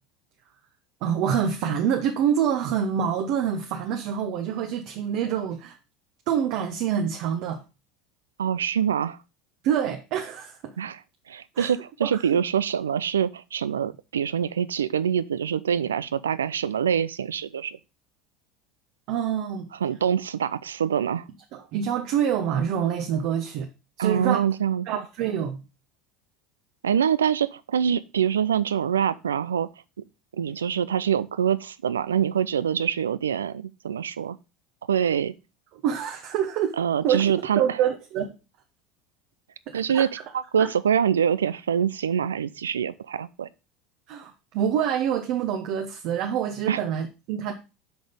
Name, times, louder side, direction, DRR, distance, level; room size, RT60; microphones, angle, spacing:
voice 1, 1.0-5.8 6.3-7.6 9.6-10.7 11.5-11.7 12.0-12.4 19.1-19.7 21.5-23.7 24.0-24.4 24.9-25.6 35.7-36.8 37.0-38.3 39.7-40.1 40.6-40.7 44.1-47.5, right 8 dB, 60° right, 0.9 m, -26 dB
voice 2, 8.4-9.2 10.8-11.0 11.3-17.8 19.8-21.2 24.0-24.8 26.8-29.7 30.4-34.4 34.9-35.3 36.8-37.6 39.7-40.1 40.3-43.5 46.7-46.8, right 8 dB, 85° right, 0.4 m, -25 dB
6.2 x 5.1 x 5.1 m
hypercardioid pair, 75°, 0 cm